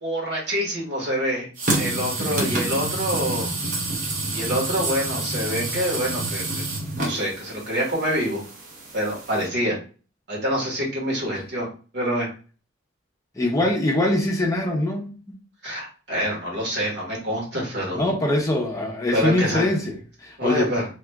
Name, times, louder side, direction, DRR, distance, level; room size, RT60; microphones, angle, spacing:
voice 1, 0.0-1.5 1.8-3.5 4.3-6.7 7.0-8.4 8.9-9.8 10.3-11.7 11.9-12.3 15.6-18.0 19.1-19.7 20.4-20.8, equal, 60° right, 1.5 m, -26 dB
sound 1, 1.6-9.4, right 2 dB, 45° right, 0.8 m, -28 dB
voice 2, 2.2-2.6 13.4-15.1 17.9-20.7, left 1 dB, 20° left, 0.6 m, -23 dB
2.8 x 2.4 x 3.4 m
head